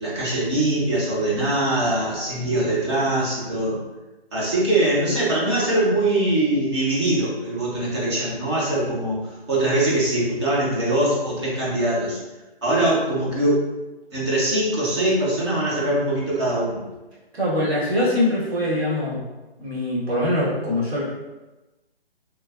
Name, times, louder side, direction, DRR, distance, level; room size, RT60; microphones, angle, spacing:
voice 1, 0.0-3.8 4.3-12.2 12.6-13.7 14.1-16.8, right 1 dB, 25° right, -6 dB, 0.7 m, -22 dB
voice 2, 17.3-19.2 19.6-21.0, left 1 dB, 80° right, -7 dB, 1.4 m, -23 dB
3.1 x 2.2 x 2.3 m, 1.1 s
figure-of-eight pair, 145°, 31 cm